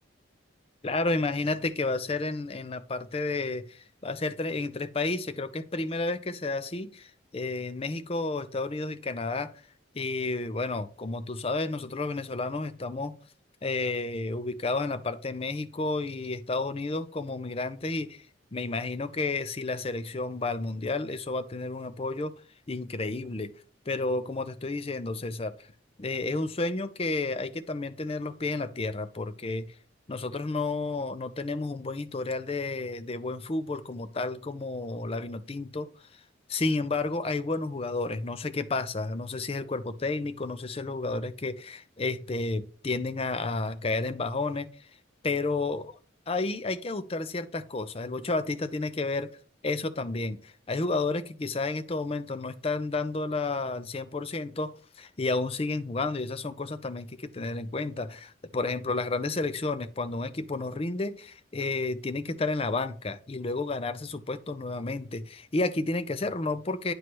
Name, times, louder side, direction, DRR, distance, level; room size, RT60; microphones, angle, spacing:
voice 1, 0.8-9.5 9.9-13.2 13.6-18.3 18.5-22.4 22.7-23.5 23.9-25.5 26.0-29.7 30.1-36.2 36.5-44.7 45.2-46.0 46.3-49.3 49.6-66.9, left 3 dB, 30° left, 0.5 m, -31 dB
9.6 x 3.2 x 6.0 m
head